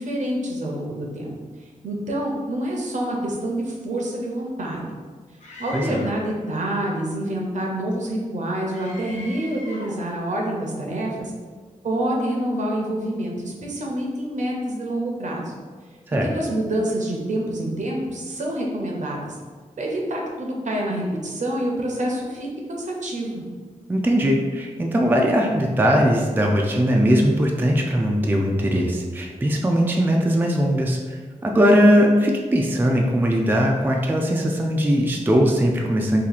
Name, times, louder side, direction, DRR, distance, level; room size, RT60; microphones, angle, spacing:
voice 1, 0.0-1.3 1.8-4.9 5.6-11.3 11.8-15.5 16.2-19.4 19.8-23.4, right 1 dB, 70° right, -1 dB, 0.7 m, -27 dB
Screaming, 5.4-6.3 8.7-10.1, left 1 dB, 65° left, 0.7 m, -39 dB
voice 2, 23.9-36.2, equal, 15° right, 0 dB, 0.3 m, -20 dB
2.8 x 2.7 x 3.9 m, 1.5 s
wide cardioid pair, 130°, 13 cm